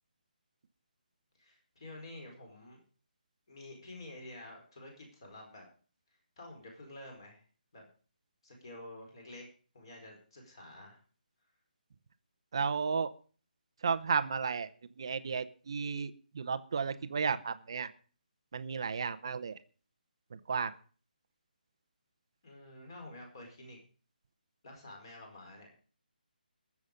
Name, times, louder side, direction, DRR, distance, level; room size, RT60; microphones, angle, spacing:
voice 1, 1.4-2.8 3.5-5.6 6.1-7.4 7.7-7.9 8.4-9.5 9.7-11.0 22.4-23.8 24.6-25.7, left 1 dB, 30° left, 2 dB, 4.6 m, -49 dB
voice 2, 12.5-13.1 13.8-14.7 15.0-17.9 18.5-19.6 20.5-20.7, right 5 dB, 30° right, 11 dB, 0.8 m, -33 dB
21.0 x 7.2 x 5.2 m, 0.41 s
hypercardioid pair, 180°, 5 cm